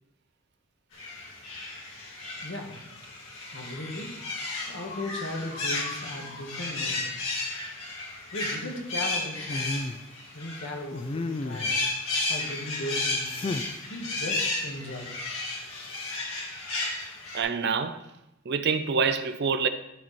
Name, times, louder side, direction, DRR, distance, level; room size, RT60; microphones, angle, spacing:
sound 1, 0.9-11.0 11.3-17.4, left 2 dB, 85° left, 2.5 m, -33 dB
voice 1, 2.4-2.8 3.5-4.1 4.7-7.2 8.3-9.9 10.3-11.8 12.3-13.3 13.9-15.1, left 1 dB, 60° left, 1.6 m, -37 dB
sound 2, 9.4-10.0 10.9-11.8 13.3-13.8 15.7-16.1, left 3 dB, 25° left, 0.3 m, -34 dB
voice 2, 17.3-18.0 18.5-19.7, right 5 dB, 55° right, 0.5 m, -26 dB
12.0 x 4.5 x 4.3 m
head